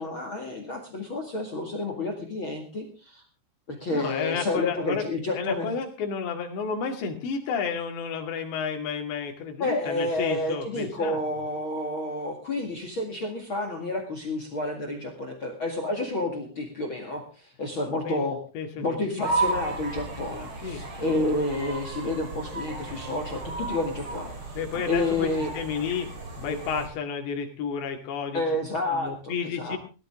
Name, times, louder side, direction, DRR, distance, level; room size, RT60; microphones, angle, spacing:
voice 1, 0.0-3.2 3.7-5.7 9.6-18.4 18.8-24.6 24.8-25.5 28.3-29.8, left 2 dB, 40° left, 4 dB, 2.0 m, -30 dB
voice 2, 3.9-5.1 5.3-11.2 18.1-18.2 18.5-19.2 20.6-20.8 24.6-28.4 28.9-29.8, left 6 dB, 80° left, 3 dB, 4.5 m, -31 dB
sound 1, 19.2-26.9, right 3 dB, 35° right, 2.9 m, -34 dB
18.0 x 13.0 x 3.7 m, 0.34 s
omnidirectional pair, 5.0 m